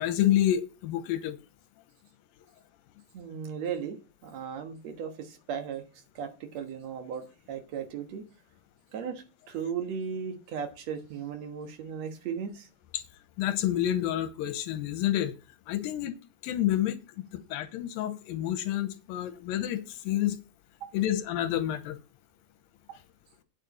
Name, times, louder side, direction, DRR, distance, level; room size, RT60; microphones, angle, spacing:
voice 1, 0.0-1.4 13.4-15.3 15.7-16.2 16.4-17.0 17.3-20.4 20.9-22.0, left 12 dB, 90° left, 2.7 m, -28 dB
voice 2, 3.1-4.0 4.2-5.8 6.2-8.2 8.9-12.7, right 7 dB, 55° right, 2.3 m, -36 dB
9.2 x 8.7 x 4.2 m
omnidirectional pair, 4.0 m